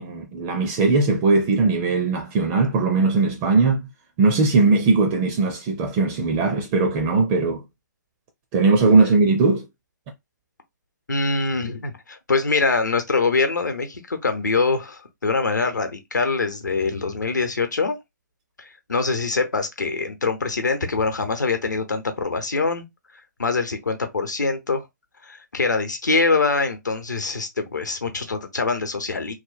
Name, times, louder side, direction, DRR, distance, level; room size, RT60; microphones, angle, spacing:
voice 1, 0.0-3.9 4.2-7.7 8.5-9.7, right 3 dB, 20° right, 0.4 m, -19 dB
voice 2, 11.1-18.0 18.6-22.8 23.4-24.8 25.2-29.3, left 4 dB, 70° left, 0.8 m, -24 dB
3.1 x 2.1 x 2.5 m
figure-of-eight pair, 130°, 10 cm